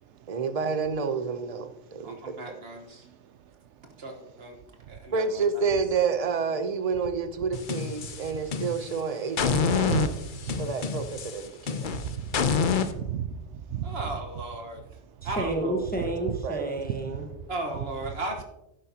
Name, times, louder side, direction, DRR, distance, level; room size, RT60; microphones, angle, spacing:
voice 1, 0.3-2.2 5.1-10.1 10.6-11.9 15.4-15.9 16.4-16.7, right 5 dB, 35° right, 8 dB, 0.8 m, -29 dB
voice 2, 2.0-3.1 4.0-4.6 4.9-5.4 13.8-14.8 15.2-15.8 17.5-18.4, right 2 dB, 60° right, 4 dB, 1.6 m, -36 dB
sound 1, 7.5-9.0 9.4-12.9, left 5 dB, 50° left, 0.8 m, -27 dB
voice 3, 9.5-10.5 12.0-12.3 12.9-13.9, right 9 dB, 85° right, 9 dB, 0.9 m, -34 dB
voice 4, 15.2-17.3, right 1 dB, 10° left, 2 dB, 1.2 m, -31 dB
11.5 x 10.0 x 2.9 m, 0.89 s
omnidirectional pair, 1.2 m